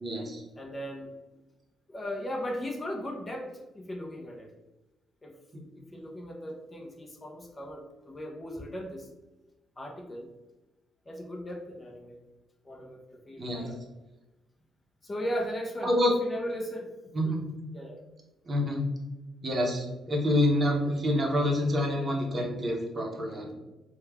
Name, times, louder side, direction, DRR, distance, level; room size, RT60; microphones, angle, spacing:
voice 1, 0.0-0.4 13.4-13.7 15.8-16.1 17.1-17.4 18.5-18.8 19.4-23.5, left 1 dB, 35° right, -1 dB, 0.7 m, -27 dB
voice 2, 0.6-1.1 1.9-4.5 5.2-5.4 5.8-9.1 9.8-10.3 11.1-12.2 12.6-13.8 15.0-16.9 17.2-17.4 17.7-18.0, equal, 25° left, 1 dB, 0.5 m, -37 dB
3.1 x 2.1 x 2.3 m, 1.1 s
cardioid pair, 90°, 0 cm